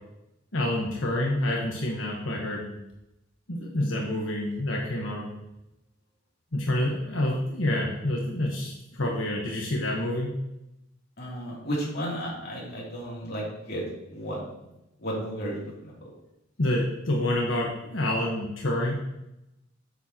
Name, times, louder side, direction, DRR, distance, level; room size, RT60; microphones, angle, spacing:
voice 1, 0.5-2.7 3.5-5.2 6.5-10.3 16.6-18.9, left 1 dB, 90° left, -2 dB, 1.2 m, -28 dB
voice 2, 11.2-13.8 14.1-14.4 15.0-16.0, equal, 55° left, -5 dB, 2.9 m, -33 dB
7.9 x 7.4 x 2.9 m, 0.89 s
head